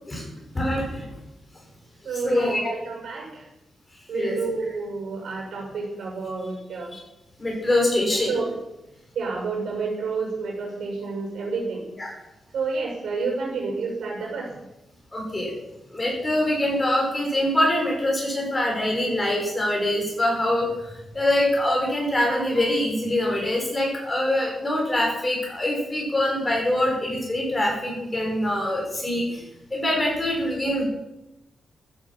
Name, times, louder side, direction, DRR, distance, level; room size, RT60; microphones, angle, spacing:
voice 1, 0.5-1.1 2.1-2.7 4.1-4.4 6.9-7.0 7.4-8.3 12.0-12.1 15.1-15.5 15.9-20.7 21.1-29.4 29.7-30.9, left 1 dB, 15° left, -1 dB, 5.5 m, -24 dB
voice 2, 2.0-3.4 4.1-6.9 8.3-8.5 9.1-11.8 12.5-14.5, right 4 dB, 80° right, 0 dB, 6.6 m, -29 dB
14.5 x 10.5 x 7.6 m, 0.93 s
wide cardioid pair, 170°, 0 cm